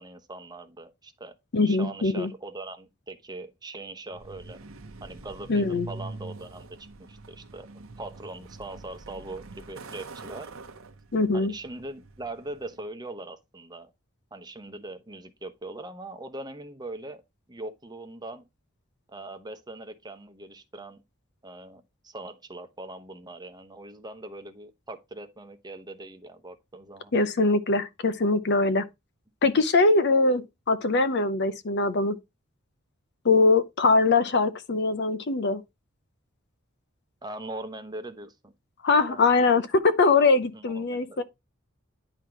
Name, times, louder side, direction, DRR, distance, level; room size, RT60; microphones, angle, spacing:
voice 1, 0.0-1.4 1.7-4.6 5.0-6.8 7.1-10.5 11.3-13.9 14.3-17.2 17.5-18.4 19.1-21.0 21.4-27.1 37.2-38.5 39.1-39.3 40.5-41.2, right 2 dB, 20° right, 0.9 m, -41 dB
voice 2, 1.5-2.3 5.5-5.9 11.1-11.5 27.1-28.8 29.4-32.2 33.2-35.6 38.8-41.2, left 3 dB, 55° left, 0.7 m, -22 dB
Truck, 4.1-12.8, right 3 dB, 80° right, 0.9 m, -44 dB
10.0 x 3.9 x 4.5 m
head